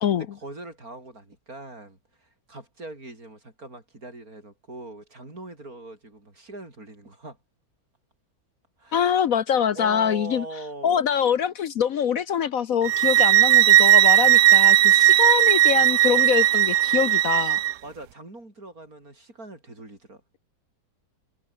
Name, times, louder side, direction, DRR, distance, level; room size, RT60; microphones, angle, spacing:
voice 1, 0.1-7.4 8.8-9.0 9.7-11.0 17.8-20.4, right 2 dB, 60° right, 6.9 m, -41 dB
voice 2, 8.9-10.4 10.8-17.6, left 8 dB, 60° left, 1.2 m, -24 dB
sound 1, 12.8-17.7, right 13 dB, 80° right, 1.3 m, -17 dB
omnidirectional pair, 1.8 m